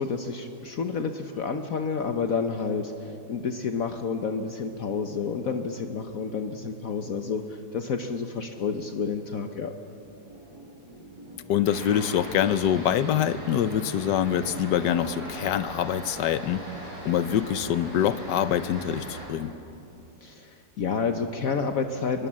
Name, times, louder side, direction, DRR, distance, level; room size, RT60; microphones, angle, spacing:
voice 1, 0.0-9.7 20.2-22.3, left 5 dB, 60° left, 6 dB, 1.3 m, -30 dB
sea monster noises, 9.9-19.6, right 1 dB, 15° right, 3.8 m, -48 dB
voice 2, 11.5-16.6 17.0-19.5, left 10 dB, 85° left, 14 dB, 1.4 m, -25 dB
sound 1, 11.6-19.3, right 1 dB, 90° right, 5.4 m, -40 dB
24.0 x 22.0 x 7.5 m, 2.8 s
omnidirectional pair, 1.8 m